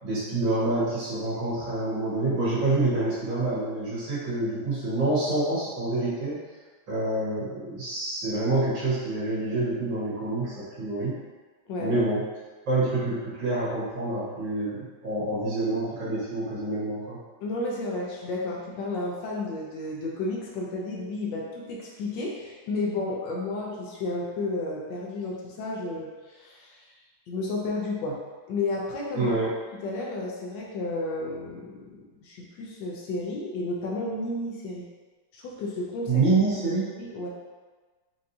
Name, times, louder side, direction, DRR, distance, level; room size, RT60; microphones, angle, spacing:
voice 1, 0.0-6.4 6.9-11.2 11.8-12.2 12.7-17.2 29.2-29.5 36.1-36.9, right 2 dB, 70° right, -9 dB, 1.9 m, -27 dB
voice 2, 11.7-12.0 17.4-26.8 27.3-28.2 28.5-29.3 29.7-34.9 35.3-36.2 37.0-37.3, left 2 dB, 75° left, -3 dB, 1.2 m, -32 dB
4.6 x 2.6 x 2.7 m, 1.3 s
omnidirectional pair, 2.2 m